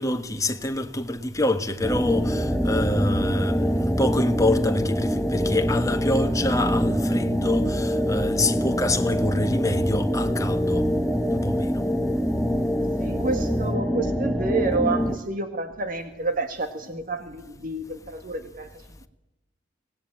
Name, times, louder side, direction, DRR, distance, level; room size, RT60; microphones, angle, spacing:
voice 1, 0.0-10.9 11.3-11.8, left 1 dB, 20° left, 1.6 m, -26 dB
sound 1, 1.8-15.2, equal, ahead, 1.1 m, -24 dB
voice 2, 13.0-19.1, right 3 dB, 50° right, 1.9 m, -29 dB
25.0 x 19.0 x 8.9 m
head